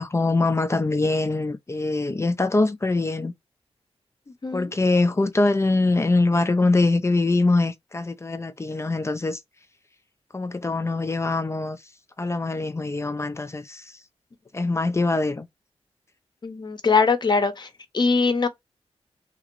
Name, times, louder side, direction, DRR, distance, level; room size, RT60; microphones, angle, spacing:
voice 1, 0.0-3.3 4.5-9.4 10.3-11.8 12.2-14.0 14.5-15.5, left 2 dB, 25° left, 0.4 m, -23 dB
voice 2, 16.4-18.5, left 4 dB, 40° left, 0.8 m, -22 dB
2.9 x 2.5 x 3.0 m
wide cardioid pair, 85°, 11 cm